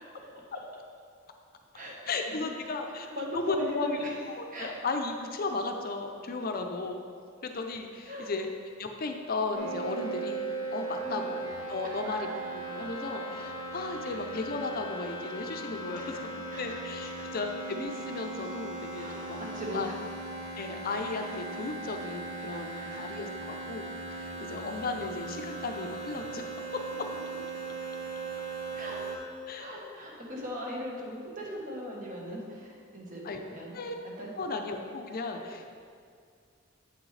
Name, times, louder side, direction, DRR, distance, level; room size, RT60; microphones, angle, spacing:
voice 1, 0.0-0.4 1.7-2.5 3.1-4.2 4.5-4.8 6.4-6.5 8.1-8.4 11.0-11.2 11.8-12.4 13.1-13.2 14.0-14.2 16.0-17.3 18.9-19.9 22.5-23.2 24.4-24.5 27.1-27.2 28.2-29.3 29.6-33.7 34.0-34.3 35.1-35.4, left 1 dB, 45° right, -2 dB, 1.3 m, -40 dB
voice 2, 2.1-4.0 4.3-7.1 7.4-8.5 8.8-12.3 12.5-16.2 16.6-19.9 20.6-26.4 29.5-29.7 33.2-33.4 33.7-33.9 34.4-35.7, left 3 dB, 50° left, 5 dB, 0.5 m, -35 dB
sound 1, 9.5-29.2, right 3 dB, 85° right, 1.1 m, -38 dB
7.8 x 6.2 x 3.2 m, 2.2 s
head